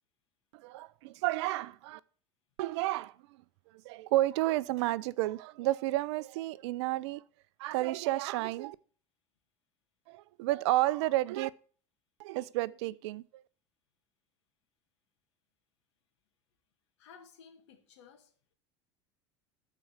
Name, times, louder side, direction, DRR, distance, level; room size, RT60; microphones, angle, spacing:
voice 1, 0.5-2.0 2.6-3.1 3.8-7.2 7.6-8.8 10.1-11.5 12.2-13.4, right 17 dB, 70° right, 0.6 m, -31 dB
voice 2, 17.0-18.3, left 6 dB, 80° left, 2.1 m, -55 dB
12.5 x 4.6 x 7.5 m
hypercardioid pair, 75°, 15 cm